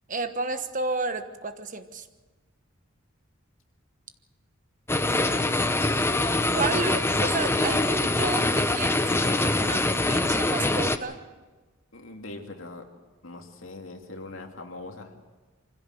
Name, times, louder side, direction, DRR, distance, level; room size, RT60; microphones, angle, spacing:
voice 1, 0.1-2.1 6.6-11.2, right 3 dB, 40° right, 9 dB, 1.2 m, -31 dB
sound 1, 4.9-11.0, left 2 dB, 10° left, 0.8 m, -24 dB
voice 2, 5.7-6.3 11.9-12.8 13.2-15.3, left 2 dB, 75° left, 3 dB, 2.5 m, -42 dB
24.5 x 16.0 x 7.7 m, 1.3 s
head